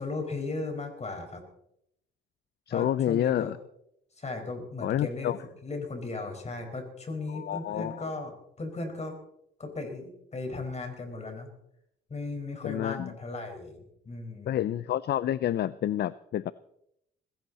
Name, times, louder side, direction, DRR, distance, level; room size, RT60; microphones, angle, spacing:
voice 1, 0.0-1.4 2.7-3.5 4.2-5.3 5.6-8.3 8.6-9.1 9.6-11.5 12.1-14.6, left 3 dB, 35° left, 5 dB, 5.0 m, -36 dB
voice 2, 2.7-3.6 4.8-5.4 7.3-8.1 12.6-13.1 14.5-16.5, left 11 dB, 55° left, 18 dB, 0.5 m, -29 dB
20.5 x 16.5 x 4.1 m, 0.77 s
cardioid pair, 90°, 20 cm